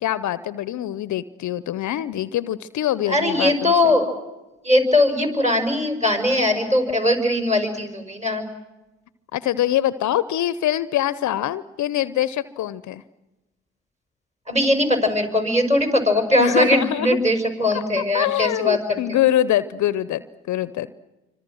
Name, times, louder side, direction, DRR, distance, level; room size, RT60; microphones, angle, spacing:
voice 1, 0.0-4.0 9.3-13.0 16.4-17.2 17.7-20.2 20.5-20.9, left 12 dB, 55° left, 16 dB, 0.8 m, -24 dB
voice 2, 3.1-4.1 4.6-8.5 14.5-19.2, left 1 dB, 20° right, 5 dB, 5.9 m, -20 dB
26.5 x 25.5 x 6.3 m, 1.0 s
hypercardioid pair, 55°, 35 cm